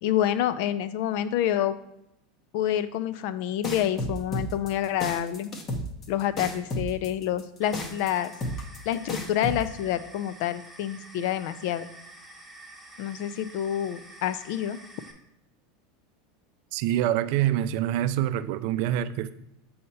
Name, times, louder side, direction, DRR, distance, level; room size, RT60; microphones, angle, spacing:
voice 1, 0.0-1.8 2.5-5.5 6.1-8.3 8.9-11.9 13.0-14.8, left 11 dB, 65° left, 13 dB, 0.4 m, -28 dB
sound 1, 3.6-9.6, left 1 dB, 35° left, 0.8 m, -32 dB
sound 2, 7.6-15.1, right 1 dB, ahead, 1.0 m, -48 dB
voice 2, 16.7-19.3, right 12 dB, 60° right, 13 dB, 0.3 m, -26 dB
6.4 x 2.8 x 5.5 m, 0.81 s
supercardioid pair, 135°, 0 cm